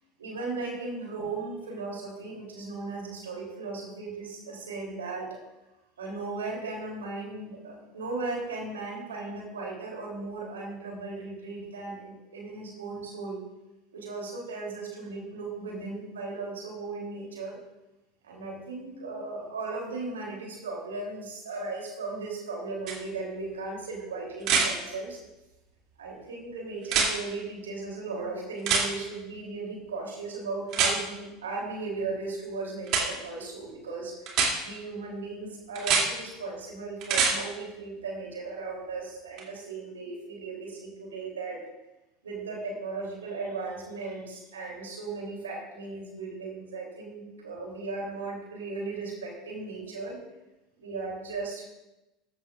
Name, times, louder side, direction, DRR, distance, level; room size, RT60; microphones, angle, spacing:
voice 1, 0.2-5.4 6.0-13.4 13.9-17.6 18.2-25.2 26.0-41.6 42.2-50.2 50.8-51.6, right 3 dB, 85° right, -2 dB, 3.4 m, -36 dB
sound 1, 22.9-23.0 24.4-24.7 26.8-27.1 28.7-28.9 30.7-30.9 32.9-33.0 34.3-34.5 35.8-36.1 37.0-37.3 39.4-39.5, right 5 dB, 55° right, 2.9 m, -24 dB
14.5 x 11.0 x 2.6 m, 0.98 s
hypercardioid pair, 80°, 0 cm